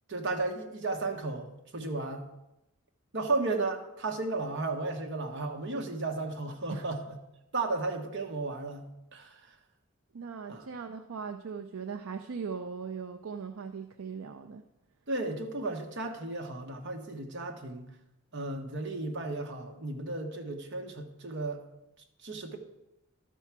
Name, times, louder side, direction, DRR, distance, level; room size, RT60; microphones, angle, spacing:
voice 1, 0.1-2.3 3.1-7.2 7.5-9.4 10.5-10.7 15.1-17.9 18.3-21.6 22.2-22.6, right 3 dB, 60° right, 3 dB, 1.2 m, -34 dB
voice 2, 10.1-14.6, right 5 dB, 75° right, 6 dB, 0.5 m, -39 dB
12.0 x 4.6 x 6.0 m, 0.90 s
head